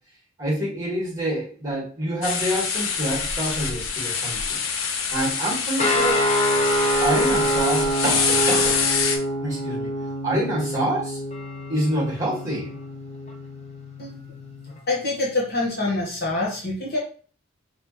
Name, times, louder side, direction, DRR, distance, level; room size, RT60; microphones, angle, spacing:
voice 1, 0.4-4.7 5.1-6.3 7.0-8.8 9.4-9.9 10.2-11.2 11.7-12.8, right 1 dB, 15° right, -5 dB, 2.0 m, -26 dB
sound 1, 2.2-9.2, left 6 dB, 80° left, 0.7 m, -25 dB
sound 2, 5.8-14.7, equal, 30° left, 0.8 m, -26 dB
voice 2, 14.9-17.0, left 2 dB, 50° left, -5 dB, 1.6 m, -25 dB
5.1 x 3.1 x 3.2 m, 0.41 s
head